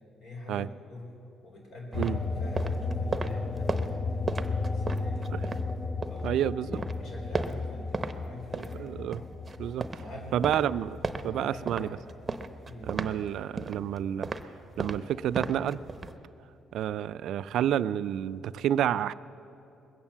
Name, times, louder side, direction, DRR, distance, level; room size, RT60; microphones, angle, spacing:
voice 1, 0.2-1.1 1.4-5.5 6.1-9.4 10.0-10.5 11.4-12.0 12.6-12.9, left 1 dB, 70° left, -1 dB, 4.2 m, -46 dB
sound 1, 1.9-12.8 13.2-14.7, left 3 dB, 30° left, 0.7 m, -34 dB
sound 2, 1.9-6.3 6.6-8.2 8.4-16.2, right 3 dB, 25° right, 0.7 m, -36 dB
voice 2, 6.2-6.8 8.5-9.2 9.6-9.9 10.3-11.0 11.2-11.9 12.8-14.3 14.8-15.8 16.7-19.1, right 10 dB, 75° right, 16 dB, 0.3 m, -29 dB
21.0 x 8.9 x 7.2 m, 2.8 s
cardioid pair, 100°, 0 cm